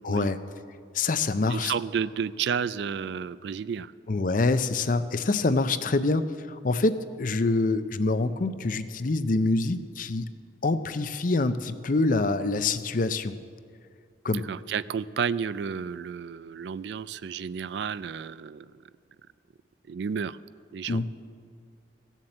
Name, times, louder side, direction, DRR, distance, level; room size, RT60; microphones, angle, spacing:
voice 1, 0.0-0.4 0.9-1.7 4.1-10.3 10.6-13.3 14.2-14.4 20.9-21.2, left 3 dB, 45° left, 12 dB, 0.5 m, -26 dB
voice 2, 1.5-3.9 14.3-18.7 19.9-20.4 20.7-21.0, right 6 dB, 65° right, 17 dB, 0.3 m, -31 dB
16.0 x 7.4 x 7.9 m, 2.2 s
head